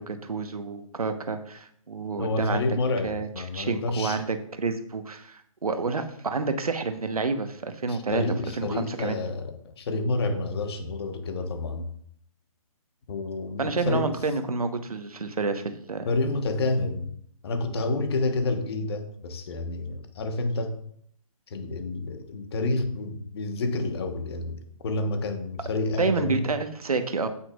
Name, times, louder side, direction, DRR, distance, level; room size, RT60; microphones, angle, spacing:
voice 1, 0.0-2.6 3.0-3.3 3.5-8.2 8.6-9.2 13.6-16.1 26.0-27.3, right 4 dB, 80° right, 8 dB, 1.2 m, -29 dB
voice 2, 2.2-4.2 7.9-11.9 13.1-14.2 16.0-17.1 17.4-20.8 21.5-26.4, left 2 dB, 45° left, 7 dB, 1.3 m, -29 dB
16.0 x 5.8 x 2.4 m, 0.66 s
figure-of-eight pair, 145°, 18 cm